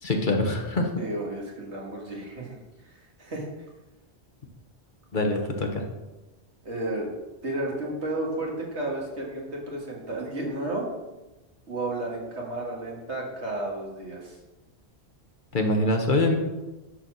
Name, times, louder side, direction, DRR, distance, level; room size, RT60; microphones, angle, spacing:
voice 1, 0.0-0.9 5.1-5.8 15.5-16.4, left 2 dB, 50° left, 3 dB, 1.3 m, -24 dB
voice 2, 1.0-2.6 3.2-3.5 5.3-5.7 6.6-7.1 7.4-10.9 11.7-14.4, right 2 dB, 90° right, -2 dB, 2.2 m, -32 dB
10.0 x 4.4 x 6.3 m, 1.1 s
omnidirectional pair, 1.1 m